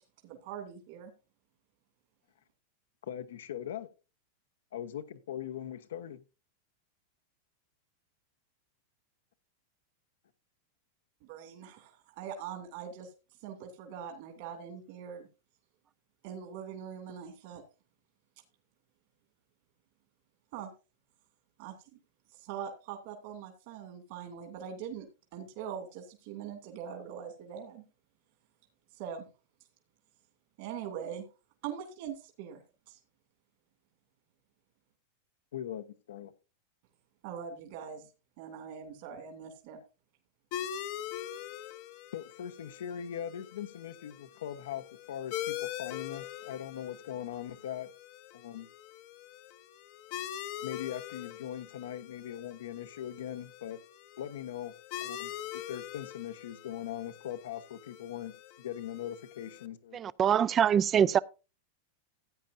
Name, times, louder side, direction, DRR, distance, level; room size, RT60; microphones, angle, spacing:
voice 1, 0.2-1.1 11.2-13.1 13.4-15.3 16.2-17.6 20.5-20.7 21.6-21.7 22.4-27.8 28.9-29.3 30.6-31.2 31.6-32.6 32.9-33.0 37.2-38.1 38.4-39.8, right 8 dB, 60° right, 2.7 m, -42 dB
voice 2, 3.0-3.9 4.7-6.2 35.5-36.3 42.1-47.9 48.3-48.7 50.6-53.8 54.2-54.7 55.0-60.0, left 10 dB, 85° left, 1.1 m, -40 dB
sound 1, 40.5-59.7, left 11 dB, 55° left, 0.9 m, -43 dB
voice 3, 59.9-61.2, right 8 dB, 25° right, 0.4 m, -24 dB
15.0 x 9.0 x 2.7 m
supercardioid pair, 130°, 0 cm